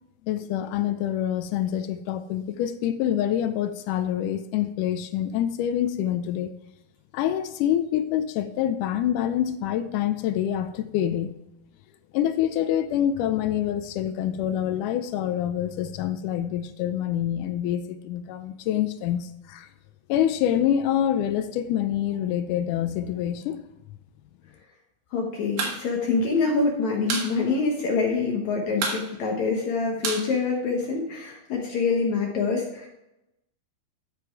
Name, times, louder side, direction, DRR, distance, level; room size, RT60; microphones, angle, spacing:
voice 1, 0.2-6.5 7.1-11.4 12.1-19.7 20.1-23.6, left 10 dB, 85° left, 10 dB, 1.8 m, -26 dB
voice 2, 25.1-32.9, left 4 dB, 60° left, 0 dB, 2.2 m, -25 dB
sound 1, 25.4-25.8 26.1-26.2 26.5-27.3 27.6-27.7 28.0-28.4 28.7-31.1, right 4 dB, 80° right, 3.5 m, -30 dB
13.0 x 5.2 x 4.6 m, 0.90 s
omnidirectional pair, 4.2 m